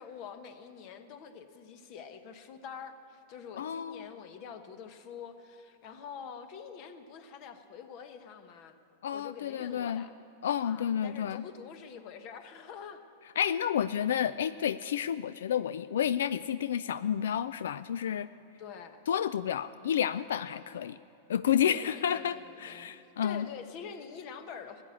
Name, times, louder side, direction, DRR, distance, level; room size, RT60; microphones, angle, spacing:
voice 1, 0.0-8.8 9.1-10.1 10.6-13.0 18.6-19.0 21.6-22.9 23.2-24.8, left 7 dB, 50° left, 9 dB, 1.1 m, -46 dB
voice 2, 3.6-4.1 9.0-10.1 10.4-11.4 13.4-18.3 19.1-21.0 21.3-23.5, left 9 dB, 80° left, 15 dB, 0.3 m, -30 dB
15.0 x 10.0 x 8.4 m, 2.9 s
hypercardioid pair, 125°, 0 cm